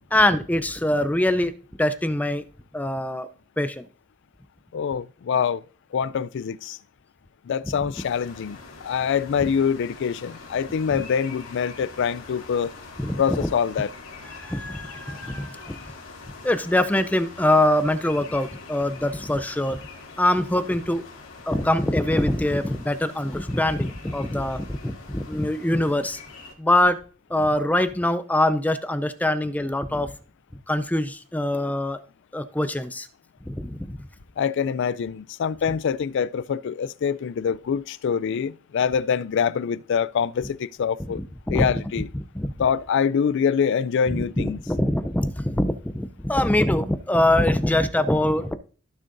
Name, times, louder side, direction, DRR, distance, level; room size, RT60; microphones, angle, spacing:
voice 1, 0.1-1.5 1.8-2.4 2.7-3.3 3.6-3.9 10.9-11.0 13.0-13.5 14.4-15.8 16.4-19.8 20.2-21.0 21.5-26.2 26.6-27.0 27.3-30.1 30.7-32.0 32.3-33.1 33.5-34.0 41.2-41.8 42.1-42.5 44.1-48.5, left 1 dB, 10° left, 0.5 m, -23 dB
voice 2, 4.7-5.6 5.9-6.8 7.5-8.6 8.8-12.7 13.2-13.9 34.4-41.2 41.5-42.1 42.6-44.6, left 7 dB, 60° left, 0.3 m, -25 dB
sound 1, 7.9-26.5, left 4 dB, 90° left, 2.3 m, -44 dB
15.5 x 6.5 x 2.6 m
head